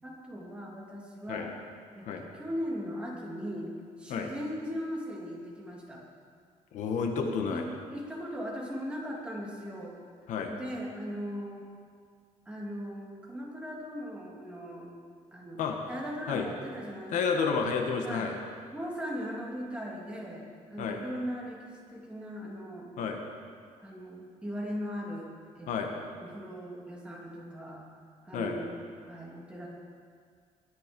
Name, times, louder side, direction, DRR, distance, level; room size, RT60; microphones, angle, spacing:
voice 1, 0.0-1.5 1.9-3.7 4.0-6.0 7.5-7.6 7.9-9.9 10.5-11.7 12.5-14.9 15.3-15.6 15.9-17.5 18.0-18.3 18.7-22.9 23.8-26.0 26.2-27.8 28.2-28.7 29.0-29.7, equal, 10° right, -4 dB, 2.7 m, -39 dB
voice 2, 6.7-7.6 10.3-10.5 15.6-15.8 16.3-16.5 17.1-18.3 20.8-21.0 23.0-23.2 25.7-25.9 28.3-28.5, left 5 dB, 65° left, 3 dB, 1.6 m, -30 dB
22.0 x 10.5 x 5.3 m, 2.1 s
cardioid pair, 180°, 14 cm